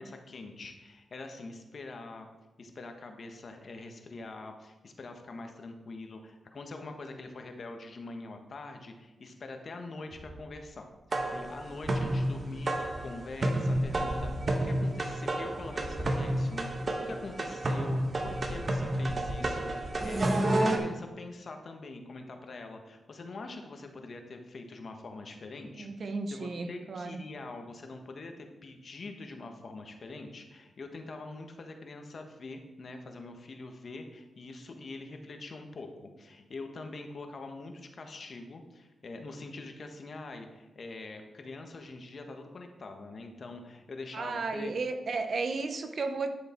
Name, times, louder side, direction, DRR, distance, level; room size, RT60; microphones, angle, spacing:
voice 1, 0.0-2.3 2.6-44.7, left 3 dB, 55° left, 5 dB, 1.3 m, -44 dB
sound 1, 10.1-11.2 12.8-13.7 15.4-16.5 18.1-19.1, equal, 20° left, 3.1 m, -51 dB
sound 2, 11.1-20.8, right 1 dB, 40° right, 1.3 m, -30 dB
voice 2, 25.7-27.2 44.1-46.3, right 3 dB, 60° right, 7 dB, 0.9 m, -34 dB
10.5 x 6.6 x 4.5 m, 1.1 s
cardioid pair, 80°, 0 cm